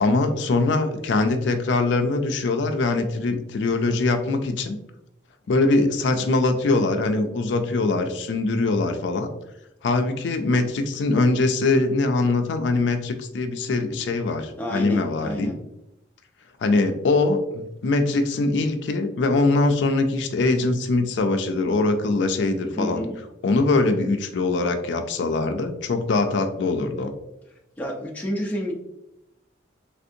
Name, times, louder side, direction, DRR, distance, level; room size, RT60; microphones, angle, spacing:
voice 1, 0.0-4.8 5.5-9.3 9.8-15.5 16.6-23.0 23.4-27.1, left 3 dB, 75° left, 7 dB, 0.4 m, -22 dB
voice 2, 14.6-15.6 22.8-23.2 27.8-28.8, equal, 10° left, -2 dB, 0.4 m, -29 dB
3.5 x 2.6 x 2.6 m, 0.86 s
head